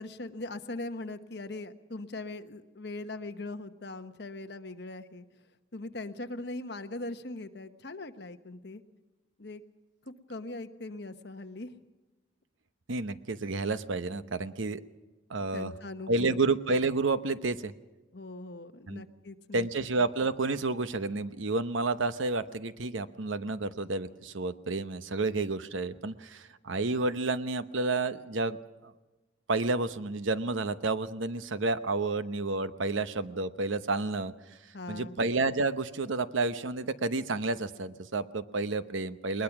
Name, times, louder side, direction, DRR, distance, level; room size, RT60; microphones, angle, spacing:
voice 1, 0.0-5.2 5.7-8.8 9.4-9.6 10.3-11.7 15.5-16.5 18.1-19.7 34.7-35.2, left 2 dB, 55° left, 8 dB, 1.1 m, -40 dB
voice 2, 12.9-14.8 15.3-15.7 16.1-17.7 18.9-19.0 19.5-28.6 28.8-28.9 29.5-34.3 34.9-39.4, right 3 dB, 80° right, 12 dB, 0.9 m, -30 dB
21.0 x 20.5 x 6.1 m, 1.2 s
head